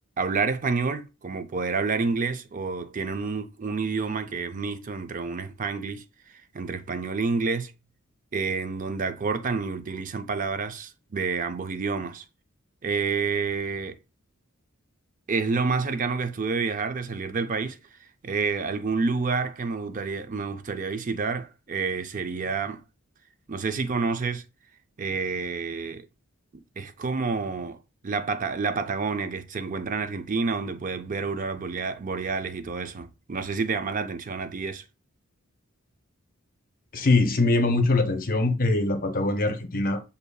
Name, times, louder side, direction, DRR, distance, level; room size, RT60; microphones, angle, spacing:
voice 1, 0.2-6.0 6.5-7.7 8.3-12.2 12.8-14.0 15.3-17.8 18.2-22.8 23.5-24.4 25.0-26.0 26.5-27.8 28.0-34.8, right 4 dB, 40° right, 0.5 m, -29 dB
voice 2, 36.9-40.0, left 2 dB, 40° left, 0.6 m, -23 dB
6.6 x 2.7 x 2.2 m
head